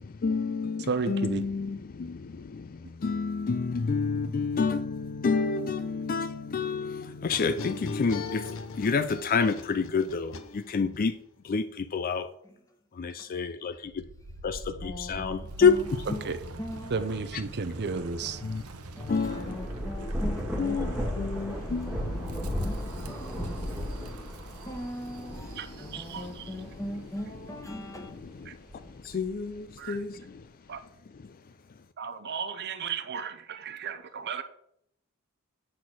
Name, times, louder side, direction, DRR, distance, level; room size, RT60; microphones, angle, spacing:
voice 1, 0.0-11.1 11.4-12.3 12.9-14.0 14.4-15.8 18.4-18.6 19.0-19.6 20.0-20.1 20.6-22.6 23.4-24.3 25.5-25.9 26.3-26.4 28.2-30.4 31.2-31.3, left 5 dB, 40° left, 0.4 m, -29 dB
voice 2, 0.9-1.4 16.2-16.4 16.9-18.4 25.6-25.7 25.9-26.4 28.5-28.6 29.8-30.0 30.7-30.8 32.0-34.4, right 5 dB, 50° right, 0.6 m, -33 dB
sound 1, 7.3-11.0, left 4 dB, 65° left, 0.8 m, -39 dB
Wind, 13.8-26.8, right 2 dB, 90° right, 0.9 m, -45 dB
voice 3, 14.8-16.3 16.6-17.3 18.2-18.6 18.9-24.0 24.6-28.2, equal, 15° left, 1.3 m, -41 dB
Thunder / Rain, 18.8-27.7 28.3-29.6, equal, 5° right, 1.6 m, -35 dB
8.7 x 4.0 x 6.2 m
head